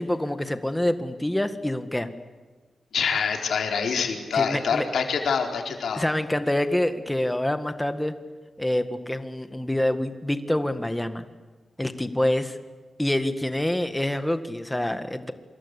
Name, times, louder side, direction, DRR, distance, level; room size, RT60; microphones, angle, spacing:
voice 1, 0.0-2.1 4.3-4.9 5.9-8.1 8.6-11.2 11.8-12.6 13.0-15.3, left 1 dB, 5° left, 9 dB, 1.7 m, -26 dB
voice 2, 2.9-6.0, left 6 dB, 80° left, 3 dB, 4.1 m, -25 dB
27.0 x 26.0 x 8.3 m, 1.3 s
wide cardioid pair, 155°, 0 cm